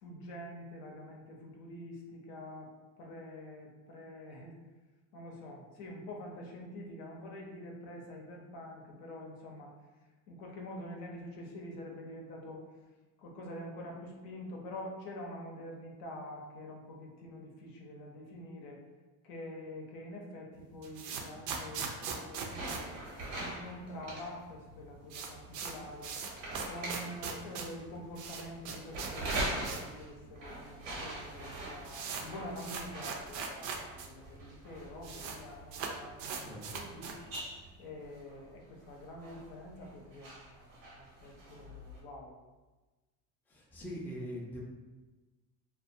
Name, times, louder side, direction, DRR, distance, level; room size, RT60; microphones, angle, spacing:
voice 1, 0.0-4.6 5.1-9.7 10.3-12.6 13.2-18.8 19.2-22.9 23.3-26.1 26.6-37.2 37.5-42.3, left 1 dB, 75° left, 0 dB, 0.7 m, -46 dB
sound 1, 20.6-23.8 24.1-24.2 24.4-24.5 24.8-30.0 30.3-30.4 31.1-31.2 31.4-34.1 34.3-34.4 34.6-35.4 35.7-37.6, right 5 dB, 55° right, 0.5 m, -41 dB
sound 2, 22.5-42.0, right 1 dB, 85° right, 0.9 m, -43 dB
voice 2, 36.4-36.8 41.2-41.4 43.5-44.6, equal, 5° left, -3 dB, 0.4 m, -43 dB
2.2 x 2.2 x 2.6 m, 1.2 s
supercardioid pair, 95°, 36 cm